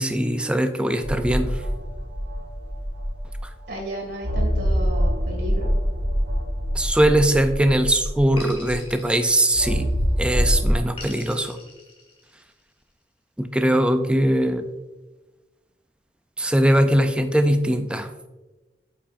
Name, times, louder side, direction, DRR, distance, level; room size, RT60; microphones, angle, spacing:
voice 1, 0.0-1.6 6.7-9.9 10.2-11.6 13.4-14.7 16.4-18.1, right 1 dB, 5° right, 8 dB, 0.4 m, -21 dB
sound 1, 1.0-3.6 4.2-8.9 9.5-10.7, equal, 85° right, 2.0 m, -24 dB
voice 2, 3.7-5.7, right 1 dB, 65° right, -1 dB, 2.0 m, -33 dB
sound 2, 6.8-7.6 8.3-10.0 11.0-12.6, left 2 dB, 35° left, 1.5 m, -43 dB
8.4 x 5.6 x 2.5 m, 1.1 s
head